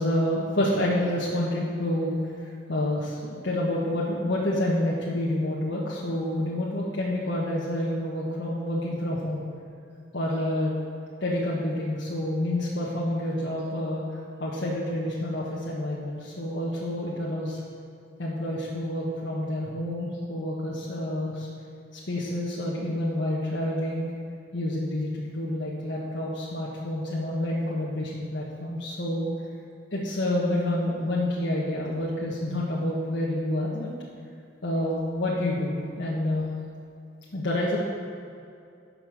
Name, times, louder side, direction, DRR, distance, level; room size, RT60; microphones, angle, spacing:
voice 1, 0.0-2.2 2.7-9.4 10.1-10.7 11.2-14.0 14.4-17.6 18.2-21.5 22.1-24.1 24.5-29.3 29.9-33.9 34.6-36.5 37.3-37.8, left 1 dB, 70° left, -6 dB, 1.5 m, -28 dB
12.5 x 5.5 x 7.5 m, 2.5 s
head